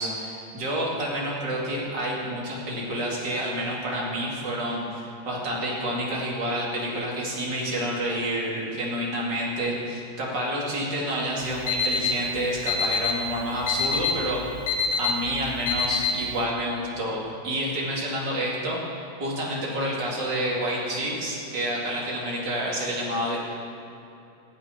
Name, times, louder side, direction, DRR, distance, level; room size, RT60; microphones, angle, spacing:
voice 1, 0.0-14.4 15.0-18.8 19.2-23.4, equal, 60° right, -4 dB, 3.2 m, -29 dB
Alarm, 11.4-16.4, left 4 dB, 70° left, 1.6 m, -27 dB
14.5 x 6.3 x 9.7 m, 2.7 s
omnidirectional pair, 2.2 m